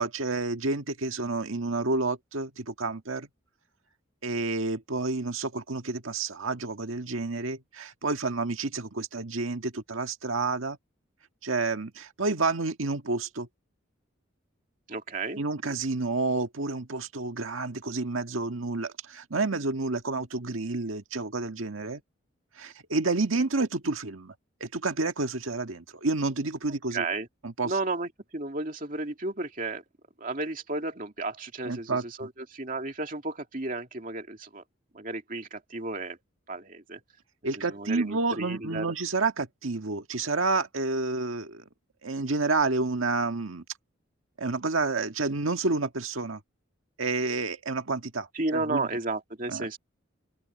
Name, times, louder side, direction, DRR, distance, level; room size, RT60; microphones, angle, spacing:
voice 1, 0.0-3.3 4.2-10.8 11.4-13.5 15.4-22.0 22.6-24.3 24.6-27.0 27.4-27.7 31.7-32.3 37.4-41.6 42.0-43.6 44.4-46.4 47.0-48.9 49.5-49.7, right 3 dB, 85° right, 1.7 m, -29 dB
voice 2, 14.9-15.4 26.9-27.3 27.6-29.8 30.2-34.6 34.9-36.2 36.5-37.0 37.6-38.9 48.3-49.8, right 2 dB, 40° right, 2.5 m, -33 dB
open air
head